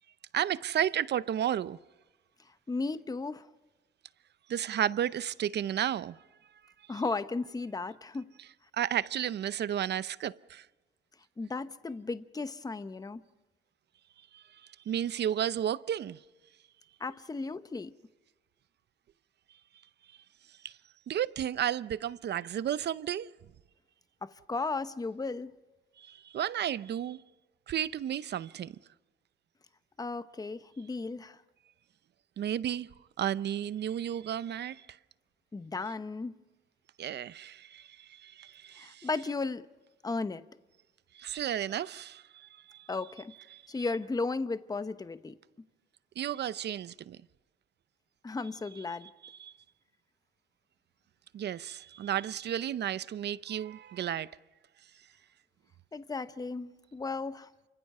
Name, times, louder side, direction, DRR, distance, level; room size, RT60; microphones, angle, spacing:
voice 1, 0.3-1.8 4.5-6.2 8.7-10.7 14.3-14.4 14.9-16.2 20.6-20.7 21.1-23.3 26.0-27.2 27.7-28.8 32.4-32.9 33.2-34.9 37.0-39.1 41.1-42.9 43.5-43.6 46.2-47.2 49.2-49.5 51.3-54.3, right 10 dB, 60° right, 0.7 m, -33 dB
voice 2, 2.7-3.5 6.9-8.3 11.4-13.2 17.0-17.9 24.2-25.6 30.0-31.4 35.5-36.4 38.8-39.7 40.0-40.5 42.9-43.3 43.7-45.4 48.2-49.1 55.9-57.5, left 3 dB, 20° left, 0.9 m, -35 dB
28.0 x 25.0 x 5.5 m
cardioid pair, 90°, 20 cm